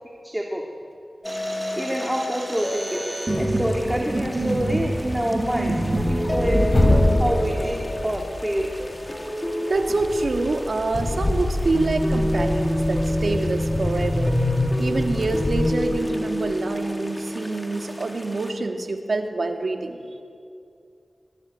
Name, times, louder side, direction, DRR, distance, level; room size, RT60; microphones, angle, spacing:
voice 1, 0.2-0.6 1.7-3.0 3.4-5.8 6.1-8.7, equal, 10° right, 1 dB, 2.5 m, -27 dB
sound 1, 1.2-18.5, equal, 15° left, 2.5 m, -29 dB
sound 2, 1.2-7.0, right 2 dB, 40° right, 6.9 m, -28 dB
sound 3, 3.8-4.7 4.9-9.1 9.7-15.7, left 1 dB, 40° left, 4.0 m, -25 dB
voice 2, 9.6-14.3 14.8-20.0, right 2 dB, 75° right, 5 dB, 2.2 m, -26 dB
22.0 x 21.5 x 9.4 m, 2.4 s
wide cardioid pair, 80°, 0 cm